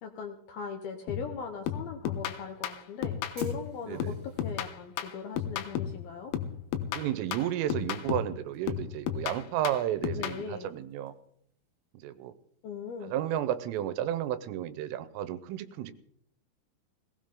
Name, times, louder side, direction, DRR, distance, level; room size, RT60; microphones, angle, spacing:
voice 1, 0.0-6.3 10.1-10.7 12.6-13.1, left 5 dB, 70° left, 5 dB, 2.4 m, -39 dB
sound 1, 1.1-1.4 1.7-3.7 4.0-6.0 6.3-8.4 8.7-10.4, left 9 dB, 85° left, 3.7 m, -34 dB
Fire, 2.3-13.8, right 3 dB, 30° right, 7.3 m, -62 dB
voice 2, 7.0-11.1 12.0-12.3 13.0-15.9, right 11 dB, 90° right, 13 dB, 3.6 m, -32 dB
19.0 x 18.0 x 3.8 m, 0.69 s
omnidirectional pair, 5.7 m